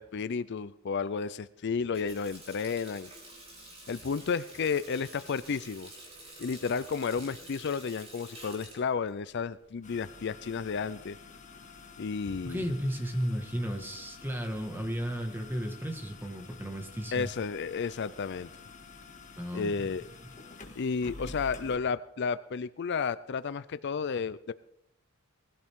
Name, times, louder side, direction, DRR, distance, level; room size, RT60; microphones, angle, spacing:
voice 1, 0.0-3.1 3.9-5.9 6.4-11.2 12.0-12.6 17.1-18.5 19.5-20.0 20.8-24.5, left 5 dB, 55° left, 15 dB, 0.4 m, -32 dB
Water tap faucet, 1.7-10.2, right 1 dB, 30° right, 4.8 m, -49 dB
sound 1, 9.8-21.8, left 3 dB, 35° left, 2.0 m, -49 dB
voice 2, 12.4-17.3 19.4-19.9, equal, 10° right, 4 dB, 1.7 m, -34 dB
20.0 x 15.5 x 3.7 m, 0.74 s
head